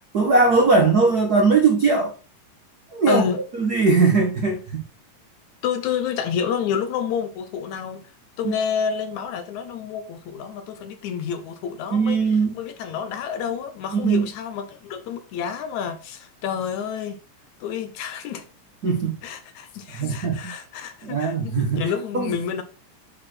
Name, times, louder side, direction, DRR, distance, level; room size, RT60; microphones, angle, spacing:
voice 1, 0.1-2.1 2.9-3.2 3.6-4.8 11.9-12.6 13.9-14.3 18.8-19.2 20.0-20.5 21.0-21.9 22.1-22.3, right 4 dB, 60° right, 0.9 m, -19 dB
voice 2, 3.1-3.4 5.6-8.1 8.4-12.2 12.5-17.2 17.6-18.5 19.2-22.6, left 7 dB, 75° left, 2.1 m, -29 dB
9.6 x 4.3 x 4.4 m
omnidirectional pair, 3.7 m